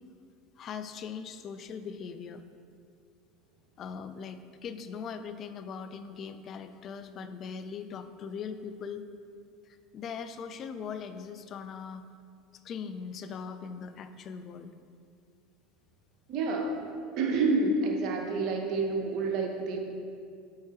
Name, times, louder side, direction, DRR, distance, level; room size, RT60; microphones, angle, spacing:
voice 1, 0.6-2.4 3.8-9.1 9.7-12.0 12.6-14.7, left 6 dB, 45° left, 10 dB, 0.4 m, -40 dB
voice 2, 16.3-16.8 17.1-19.8, right 3 dB, 55° right, 2 dB, 0.9 m, -28 dB
7.6 x 4.7 x 2.9 m, 2.3 s
hypercardioid pair, 90°, 0 cm